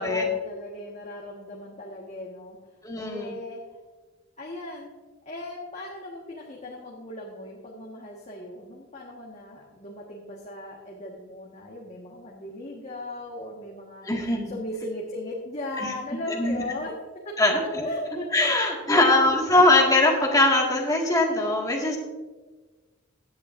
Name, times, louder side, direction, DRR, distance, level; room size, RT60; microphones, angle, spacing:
voice 1, 0.0-2.6 2.9-3.6 4.4-4.9 5.2-14.0 14.5-16.9 17.4-17.5 17.8-18.6 18.9-19.5, left 1 dB, 35° left, -3 dB, 1.5 m, -37 dB
voice 2, 2.8-3.3 14.1-14.5 16.4-16.6 17.4-17.9 18.3-22.0, left 2 dB, 15° left, -1 dB, 1.9 m, -21 dB
16.5 x 10.5 x 2.6 m, 1.3 s
head